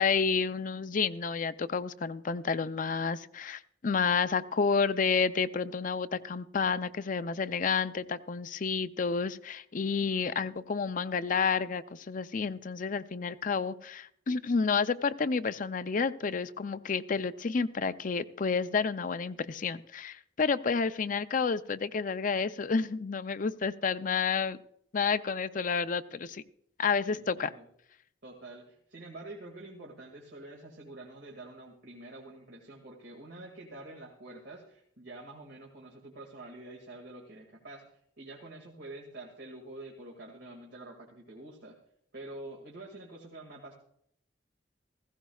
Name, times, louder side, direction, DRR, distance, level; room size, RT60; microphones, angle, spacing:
voice 1, 0.0-24.6 24.9-26.4 26.8-27.5, left 5 dB, 45° left, 13 dB, 0.5 m, -30 dB
voice 2, 27.1-27.6 28.2-41.8 42.1-43.7, right 2 dB, 75° right, 0 dB, 2.1 m, -47 dB
16.5 x 16.0 x 2.4 m, 0.69 s
head